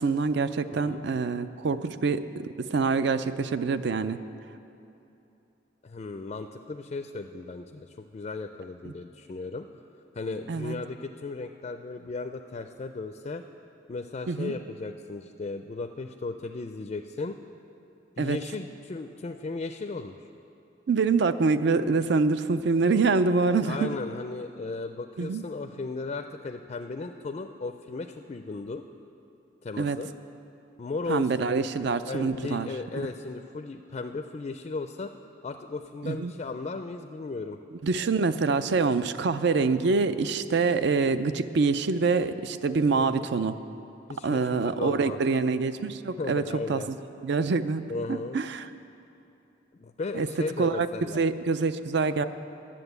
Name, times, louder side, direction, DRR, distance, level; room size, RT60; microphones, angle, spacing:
voice 1, 0.0-4.2 8.8-8.9 10.5-10.7 14.3-14.5 18.2-18.4 20.9-23.9 25.2-25.4 29.8-30.0 31.1-32.7 33.0-33.1 36.0-36.3 37.8-43.6 44.2-47.0 47.2-47.8 48.1-48.7 50.1-50.3 50.6-50.9 51.1-52.2, right 4 dB, 65° right, 12 dB, 0.4 m, -25 dB
voice 2, 5.8-9.7 10.2-13.4 13.9-17.4 18.2-20.1 23.6-28.9 29.6-30.1 30.8-31.3 32.1-35.1 35.4-37.6 42.9-43.3 44.1-45.2 46.2-46.9 47.9-48.4 49.8-51.2, left 3 dB, 35° left, 7 dB, 0.4 m, -36 dB
11.0 x 7.5 x 8.0 m, 2.8 s
head